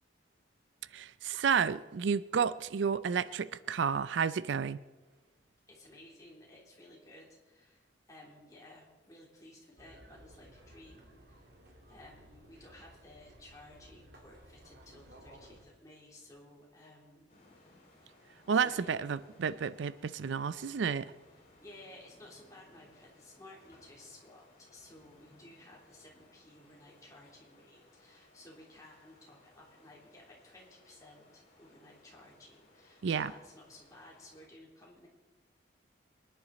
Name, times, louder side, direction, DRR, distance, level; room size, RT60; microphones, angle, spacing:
voice 1, 0.9-4.8 18.5-21.1 33.0-33.3, right 6 dB, 75° right, 0.4 m, -31 dB
voice 2, 5.7-11.5 11.9-18.1 18.5-19.1 21.3-35.1, left 1 dB, 20° left, 3.3 m, -56 dB
sound 1, 9.8-15.7, right 1 dB, 60° right, 2.8 m, -57 dB
sound 2, 17.3-34.5, left 2 dB, 35° left, 4.8 m, -62 dB
24.0 x 10.5 x 4.1 m
head